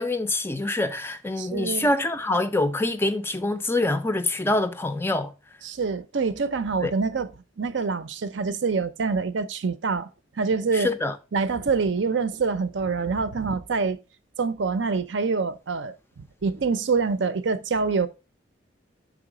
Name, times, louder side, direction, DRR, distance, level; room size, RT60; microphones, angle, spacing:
voice 1, 0.0-5.3 6.8-6.9 10.7-11.2, left 2 dB, 10° left, 0.4 m, -25 dB
voice 2, 1.4-1.9 5.6-7.3 7.6-10.1 10.4-10.9 11.3-14.0 14.4-18.1, right 4 dB, 65° right, 0.6 m, -26 dB
6.1 x 4.0 x 4.8 m
head